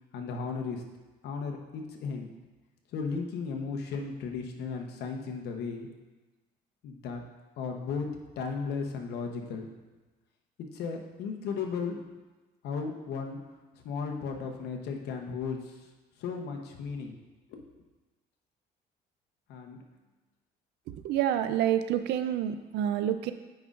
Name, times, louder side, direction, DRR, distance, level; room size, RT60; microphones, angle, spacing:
voice 1, 0.1-0.8 1.2-2.3 2.9-5.9 6.8-7.2 7.6-8.1 8.4-9.7 10.6-12.0 12.6-13.4 13.7-15.9 16.2-17.2 17.5-17.6 19.5-19.8, left 5 dB, 75° left, 2 dB, 0.9 m, -35 dB
voice 2, 20.9-23.3, right 10 dB, 80° right, 10 dB, 0.5 m, -28 dB
9.2 x 5.3 x 2.5 m, 1.2 s
cardioid pair, 110°, 17 cm